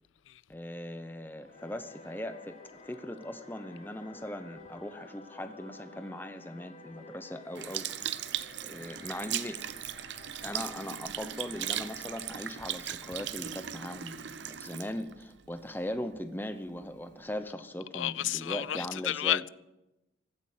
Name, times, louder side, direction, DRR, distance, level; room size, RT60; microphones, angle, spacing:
voice 1, 0.5-2.6 2.8-8.1 8.6-9.6 10.4-19.4, left 1 dB, 10° left, 0.8 m, -39 dB
Singing / Musical instrument, 1.4-14.3, left 3 dB, 40° left, 7.2 m, -53 dB
Sink (filling or washing) / Liquid, 7.5-16.1 16.8-16.9, right 11 dB, 65° right, 0.7 m, -38 dB
voice 2, 17.9-19.5, left 12 dB, 75° left, 0.4 m, -31 dB
15.5 x 12.5 x 6.6 m
head